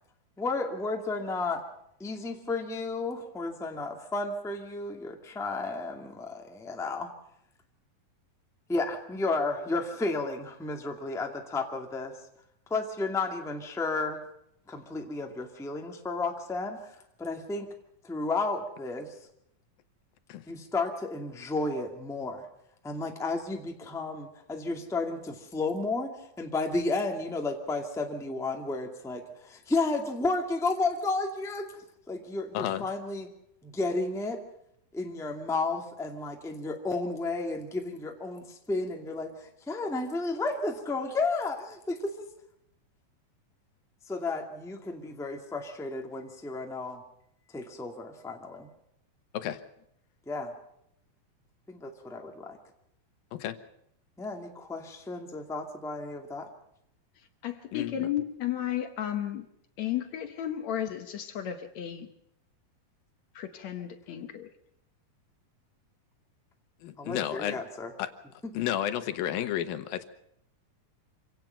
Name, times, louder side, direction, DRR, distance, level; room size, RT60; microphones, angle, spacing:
voice 1, 0.4-1.6 2.0-7.1 8.7-12.1 12.7-14.2 14.7-17.7 18.0-19.1 20.5-22.4 22.8-31.7 32.1-33.3 33.6-34.4 34.9-42.3 44.1-47.0 47.5-48.7 50.2-50.5 51.7-52.6 54.2-56.5 67.0-67.9, left 3 dB, ahead, 2 dB, 1.4 m, -32 dB
voice 2, 32.5-32.9 49.3-49.6 53.3-53.6 57.7-58.1 66.8-67.6 68.0-68.1 68.5-70.0, left 11 dB, 85° left, 10 dB, 2.9 m, -32 dB
voice 3, 57.4-59.5 59.8-62.1 63.4-64.5, left 11 dB, 65° left, 8 dB, 2.0 m, -33 dB
26.0 x 17.5 x 5.8 m, 0.76 s
omnidirectional pair, 4.1 m